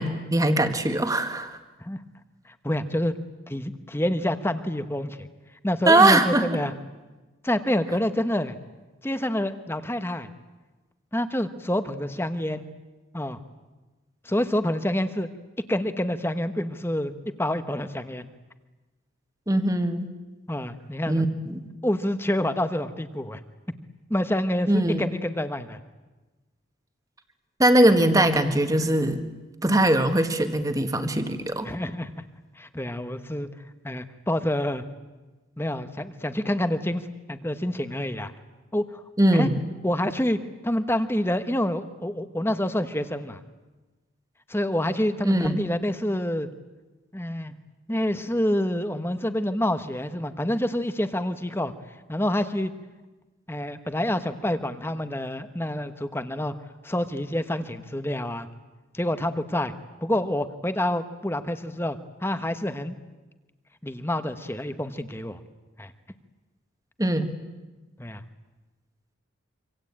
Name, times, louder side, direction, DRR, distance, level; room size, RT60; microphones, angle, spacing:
voice 1, 0.0-1.6 5.9-6.5 19.5-20.1 21.1-21.6 24.7-25.1 27.6-29.2 29.6-31.7 39.2-39.6 45.2-45.6 67.0-67.3, right 1 dB, 15° right, 7 dB, 1.8 m, -21 dB
voice 2, 2.5-3.1 3.5-5.3 5.6-6.7 7.4-8.6 9.0-10.3 11.1-12.6 13.1-13.4 14.2-15.3 15.7-17.1 17.4-18.3 20.5-21.2 21.8-23.4 24.1-25.8 31.6-32.1 32.6-33.5 33.8-34.8 35.6-38.3 38.7-39.0 39.3-39.5 39.8-40.4 40.6-43.4 44.5-46.5 47.1-47.5 47.9-51.7 52.1-52.7 53.5-56.5 56.8-58.5 58.9-59.7 60.0-63.0 63.8-65.4 65.8-65.9 68.0-68.2, left 1 dB, 10° left, 10 dB, 1.2 m, -27 dB
26.0 x 26.0 x 8.8 m, 1.2 s
head